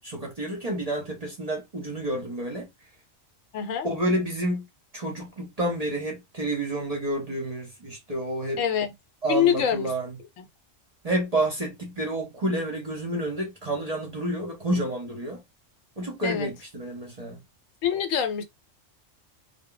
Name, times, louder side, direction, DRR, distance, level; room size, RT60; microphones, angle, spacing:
voice 1, 0.0-2.7 3.8-4.7 4.9-8.6 9.2-10.2 11.0-15.4 16.0-17.4, right 1 dB, 40° right, 0.6 m, -29 dB
voice 2, 3.5-3.9 8.6-8.9 9.3-9.9 10.4-10.5 16.2-16.5 17.8-18.4, left 9 dB, 80° left, 1.0 m, -25 dB
2.1 x 2.1 x 3.8 m
omnidirectional pair, 1.4 m